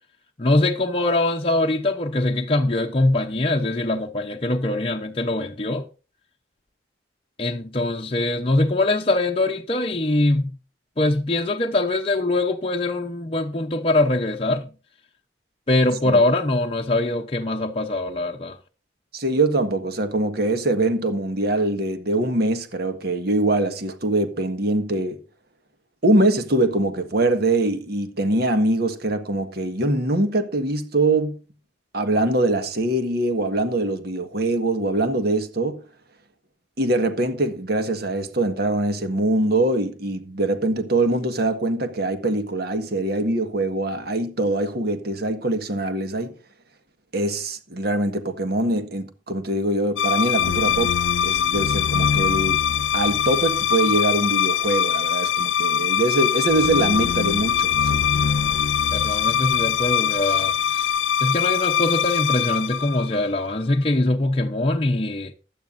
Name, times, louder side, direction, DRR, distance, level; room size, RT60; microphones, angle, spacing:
voice 1, 0.4-5.9 7.4-10.6 11.0-14.7 15.7-18.6 58.9-60.9 61.2-65.3, left 2 dB, 30° left, 0.7 m, -22 dB
voice 2, 19.1-25.2 26.0-31.4 31.9-35.8 36.8-46.3 47.1-51.0 51.2-52.6 52.9-58.0, right 2 dB, 55° right, 1.5 m, -23 dB
sound 1, 50.0-63.6, left 8 dB, 80° left, 0.5 m, -22 dB
16.0 x 11.5 x 2.6 m
head